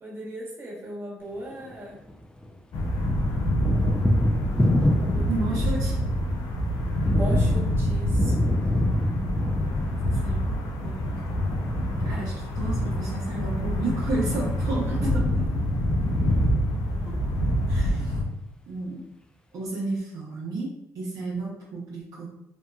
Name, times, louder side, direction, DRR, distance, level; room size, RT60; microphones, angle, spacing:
voice 1, 0.0-2.0 5.0-5.8 7.0-8.3 14.9-15.5 17.1-17.2, equal, 35° right, -4 dB, 1.1 m, -36 dB
Thunder, 1.4-2.6 2.8-18.1, left 1 dB, 10° left, 0.4 m, -28 dB
sound 1, 2.7-18.2, equal, 70° left, 0.5 m, -26 dB
voice 2, 5.3-5.9 9.1-9.6 10.0-10.5 10.8-11.1 12.0-14.9 17.7-18.1 18.7-19.0 19.5-22.3, right 3 dB, 65° right, -5 dB, 0.7 m, -32 dB
2.9 x 2.2 x 2.3 m, 0.80 s
supercardioid pair, 70°, 7 cm